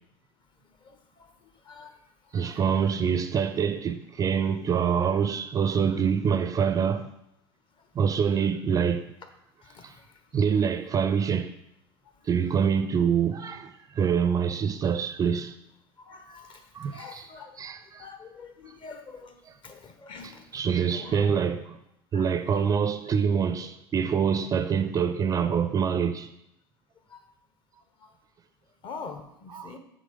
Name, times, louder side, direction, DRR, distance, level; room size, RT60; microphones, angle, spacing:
voice 1, 0.6-2.8 7.8-7.9 9.6-10.6 12.0-12.3 16.0-17.6 17.9-21.4 22.1-22.4 27.1-27.3 28.0-28.1 28.8-29.8, left 5 dB, 40° left, 1.0 m, -46 dB
voice 2, 2.3-7.1 7.9-9.1 9.8-10.0 10.3-11.5 12.2-15.5 16.7-17.3 17.6-18.1 20.5-21.8 22.1-26.3 29.5-29.7, right 7 dB, 25° right, 0.4 m, -25 dB
6.3 x 3.8 x 5.1 m
hypercardioid pair, 80°, 13 cm